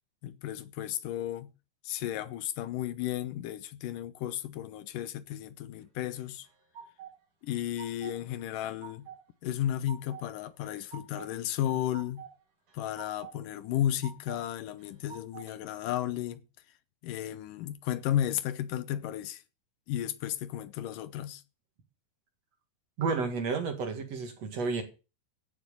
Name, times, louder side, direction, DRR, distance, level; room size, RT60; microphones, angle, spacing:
voice 1, 0.2-1.5 1.8-6.5 7.4-9.1 9.4-12.3 12.7-16.4 17.0-19.4 19.9-21.4, left 12 dB, 80° left, 2.4 m, -33 dB
sound 1, 6.1-7.1 7.5-8.2 8.5-9.2 9.6-10.3 10.6-11.3 11.6-12.3 12.7-13.4 13.7-14.4 14.8-15.5, right 7 dB, 85° right, 6.3 m, -48 dB
voice 2, 23.0-24.8, right 4 dB, 55° right, 2.9 m, -31 dB
15.5 x 6.6 x 6.8 m
omnidirectional pair, 3.9 m